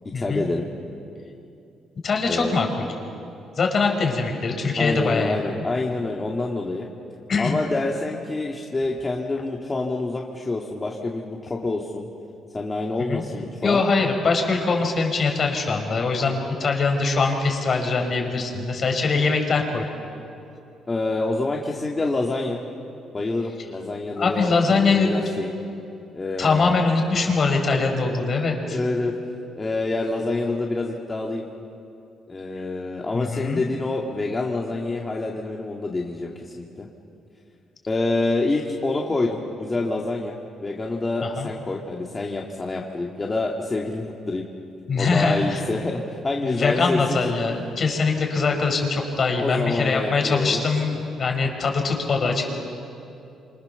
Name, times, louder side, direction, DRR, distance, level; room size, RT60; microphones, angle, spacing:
voice 1, 0.1-0.6 2.3-2.5 4.8-6.9 7.4-12.1 12.5-13.8 20.9-22.6 23.1-25.5 26.1-26.7 28.7-29.1 29.5-31.4 32.3-36.9 37.9-40.3 40.6-44.4 45.0-47.3 49.4-50.6, left 2 dB, 25° left, -1 dB, 2.3 m, -27 dB
voice 2, 2.0-2.9 3.6-5.6 7.3-7.6 13.0-13.2 13.6-19.8 24.2-25.1 26.4-28.8 33.1-33.6 41.2-41.5 44.9-45.6 46.4-52.4, left 4 dB, 50° left, 3 dB, 5.4 m, -22 dB
27.5 x 26.0 x 7.1 m, 2.7 s
cardioid pair, 90°, 0 cm